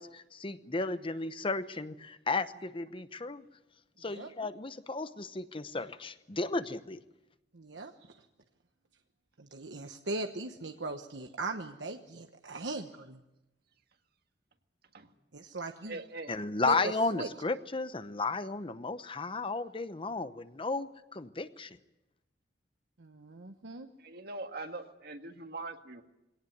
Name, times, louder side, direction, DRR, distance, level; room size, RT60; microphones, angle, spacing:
voice 1, 0.0-3.4 4.0-7.0 16.3-21.8, left 3 dB, 30° left, 12 dB, 0.9 m, -34 dB
voice 2, 7.5-8.3 9.4-13.2 15.3-16.0 16.6-17.3 23.0-23.9, right 3 dB, 85° right, 5 dB, 1.1 m, -39 dB
voice 3, 15.8-16.4 24.0-26.0, right 2 dB, 60° right, 6 dB, 1.8 m, -42 dB
22.5 x 18.0 x 9.5 m, 0.96 s
head